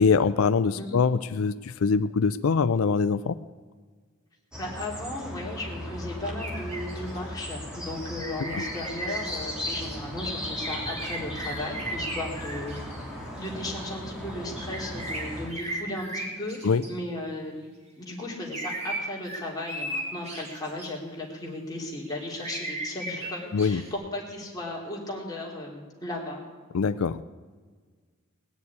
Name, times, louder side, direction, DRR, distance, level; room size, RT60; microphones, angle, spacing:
voice 1, 0.0-3.4 8.5-8.6 16.6-16.9 23.5-23.8 26.7-27.2, left 5 dB, 85° left, 13 dB, 0.5 m, -23 dB
sound 1, 4.5-15.5, left 1 dB, 5° right, 2.9 m, -37 dB
voice 2, 4.6-12.8 13.4-16.6 16.9-17.6 18.0-26.4, left 1 dB, 20° left, -3 dB, 3.6 m, -35 dB
sound 2, 6.4-7.2 8.2-9.4 9.6-10.0 10.6-13.5 14.7-16.9 18.5-20.9 21.9-23.9, right 1 dB, 30° right, 3.4 m, -36 dB
19.0 x 7.1 x 9.6 m, 1.5 s
head